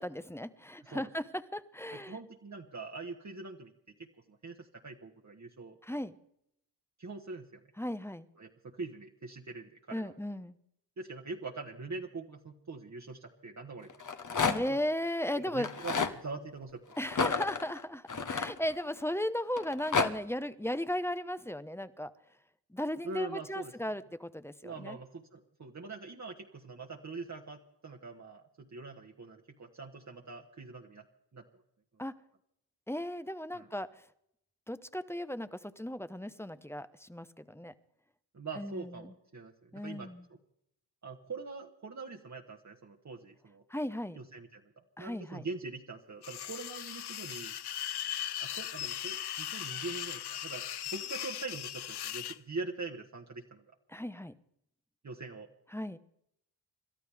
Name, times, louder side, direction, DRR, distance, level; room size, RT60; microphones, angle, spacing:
voice 1, 0.0-2.2 5.8-6.1 7.8-8.3 9.9-10.6 14.5-15.7 17.0-22.1 22.7-25.0 32.0-32.1 32.9-33.9 34.7-37.7 38.5-39.1 39.7-40.3 43.7-44.2 45.0-45.5 53.9-54.3 55.7-56.0, left 1 dB, 5° left, 13 dB, 1.0 m, -36 dB
voice 2, 1.9-3.7 4.0-5.8 7.0-7.6 8.4-10.2 11.0-13.9 14.5-14.8 15.5-16.8 23.0-23.7 24.6-31.1 31.3-31.6 33.5-33.7 38.3-40.1 41.0-43.6 44.1-47.6 48.4-50.6 50.9-53.6 55.0-55.5, right 3 dB, 40° right, 1 dB, 1.5 m, -43 dB
Rattle, 13.9-14.8 15.5-16.1 17.1-19.0 19.6-20.1, left 5 dB, 45° left, 1.4 m, -31 dB
sound 1, 46.2-52.4, left 11 dB, 60° left, 0.7 m, -38 dB
27.5 x 13.0 x 3.6 m, 0.74 s
cardioid pair, 50°, 43 cm